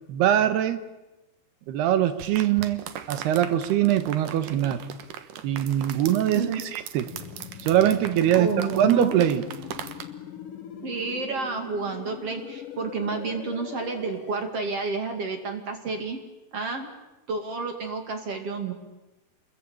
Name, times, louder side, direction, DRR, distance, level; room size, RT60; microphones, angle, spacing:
voice 1, 0.1-0.8 1.7-4.8 5.4-7.1 7.6-8.5 8.8-9.4, right 11 dB, 80° right, 11 dB, 3.4 m, -22 dB
sound 1, 2.2-10.0, right 9 dB, 60° right, 2.6 m, -39 dB
sound 2, 7.1-14.5, left 8 dB, 60° left, 3.0 m, -41 dB
voice 2, 8.3-9.2 10.8-16.2 16.5-16.9 17.3-18.7, right 4 dB, 40° right, 6 dB, 3.0 m, -30 dB
29.0 x 21.5 x 8.8 m, 1.0 s
omnidirectional pair, 4.6 m